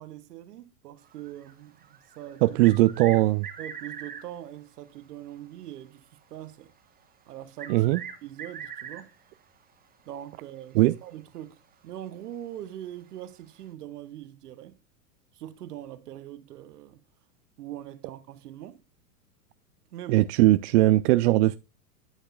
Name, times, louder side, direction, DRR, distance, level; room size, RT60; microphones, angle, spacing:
voice 1, 0.0-2.6 3.6-6.7 7.3-9.1 10.1-14.8 15.3-17.0 17.6-18.8 19.9-20.3, right 12 dB, 75° right, 0.9 m, -42 dB
sound 1, 1.0-4.4 6.8-6.9 7.6-9.3 10.9-11.0 11.4-11.5 13.2-13.3, right 8 dB, 20° right, 1.1 m, -42 dB
voice 2, 2.4-3.5 7.7-8.0 10.7-10.9 20.1-21.6, right 17 dB, 50° right, 0.4 m, -20 dB
10.5 x 6.3 x 2.3 m
hypercardioid pair, 110°, 47 cm